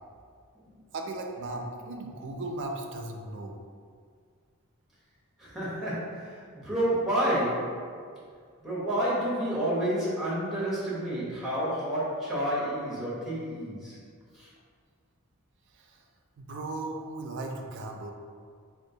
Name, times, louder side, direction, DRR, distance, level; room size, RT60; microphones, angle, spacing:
voice 1, 0.9-3.6 15.7-16.0 16.4-18.1, right 2 dB, 55° right, 2 dB, 0.4 m, -37 dB
voice 2, 5.4-7.8 8.6-14.0 14.3-14.5, right 1 dB, ahead, -9 dB, 0.8 m, -29 dB
3.6 x 2.3 x 2.7 m, 2.1 s
head